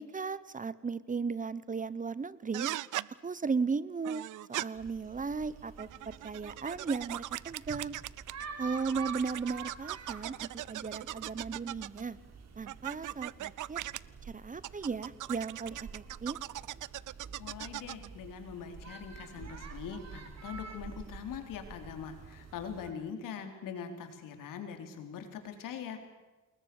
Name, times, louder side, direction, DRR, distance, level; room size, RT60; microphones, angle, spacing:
voice 1, 0.0-2.7 3.1-8.0 8.6-12.2 12.6-13.8 14.2-16.4, right 5 dB, 25° right, 18 dB, 0.9 m, -36 dB
sound 1, 2.5-3.1 4.0-4.7 5.7-8.5 8.8-12.0 12.7-14.0 14.6-18.1, right 14 dB, 70° right, 0.7 m, -39 dB
sound 2, 4.7-22.9, right 5 dB, 55° right, 4.1 m, -48 dB
voice 2, 17.4-26.0, left 7 dB, 90° left, 6 dB, 4.0 m, -42 dB
27.5 x 21.0 x 7.1 m, 1.2 s
cardioid pair, 115°, 32 cm